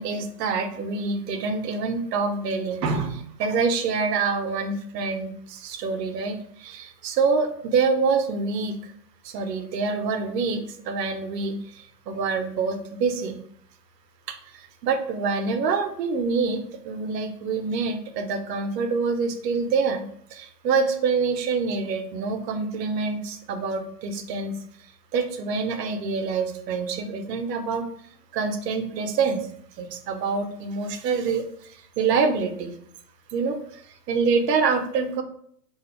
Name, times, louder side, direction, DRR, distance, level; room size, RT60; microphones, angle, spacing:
voice 1, 0.0-8.9 9.2-13.4 14.3-20.0 20.3-24.6 25.1-27.8 28.3-29.5 29.8-32.7 33.3-35.2, right 4 dB, 85° right, 8 dB, 0.6 m, -26 dB
2.3 x 2.1 x 2.9 m, 0.65 s
hypercardioid pair, 165°, 48 cm